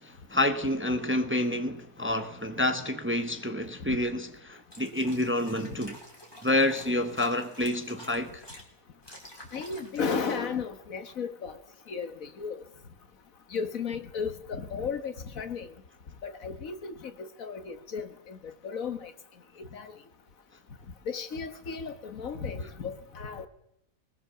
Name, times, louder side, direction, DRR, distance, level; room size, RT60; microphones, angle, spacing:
voice 1, 0.0-6.0 6.4-8.4, left 1 dB, 10° right, 1.0 m, -28 dB
sound 1, 4.7-8.6 9.0-10.2, equal, 15° left, 3.5 m, -49 dB
voice 2, 9.5-11.6 11.9-12.6 13.5-15.7 16.2-19.1 19.6-19.9 21.1-23.5, left 5 dB, 70° left, 1.8 m, -34 dB
21.5 x 20.0 x 7.0 m
omnidirectional pair, 1.5 m